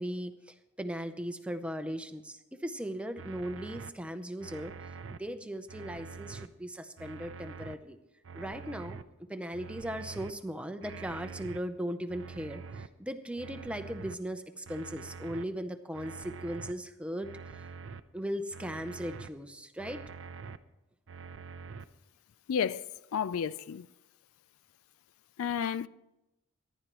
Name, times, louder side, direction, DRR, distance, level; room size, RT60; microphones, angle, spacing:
voice 1, 0.0-4.7 5.1-8.0 8.3-9.0 9.3-17.7 18.1-20.1, equal, 5° right, 0.6 m, -38 dB
alien beacon, 3.2-3.9 4.4-5.2 5.7-6.5 7.0-7.7 8.2-9.0 9.5-10.3 10.8-11.6 12.1-12.9 13.4-14.2 14.7-15.4 15.9-16.7 17.2-18.0 18.5-19.3 19.8-20.6 21.1-21.9, right 5 dB, 60° right, 0.5 m, -45 dB
voice 2, 22.5-22.9 23.1-23.9 25.4-25.9, left 7 dB, 70° left, 0.4 m, -31 dB
24.5 x 11.0 x 3.0 m
head